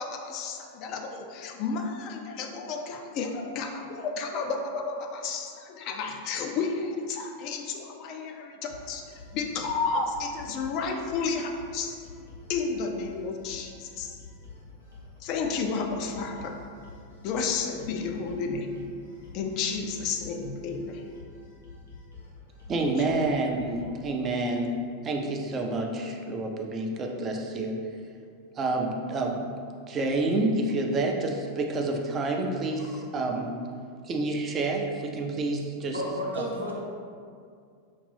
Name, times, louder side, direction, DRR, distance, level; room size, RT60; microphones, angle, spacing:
voice 1, 0.0-12.0 12.5-14.2 15.2-16.6 17.2-18.8 19.3-21.1 23.0-23.2 32.8-32.9, left 4 dB, 40° left, 3 dB, 0.4 m, -32 dB
sound 1, 8.7-24.0, left 3 dB, 85° left, 1.0 m, -48 dB
voice 2, 22.7-27.8 28.5-29.4 29.9-33.5 34.0-36.0 36.3-36.5, right 2 dB, 25° right, 2 dB, 0.5 m, -28 dB
voice 3, 35.9-36.7, equal, 80° right, -4 dB, 0.8 m, -32 dB
5.0 x 2.5 x 3.3 m, 2.2 s
figure-of-eight pair, 90°, 0 cm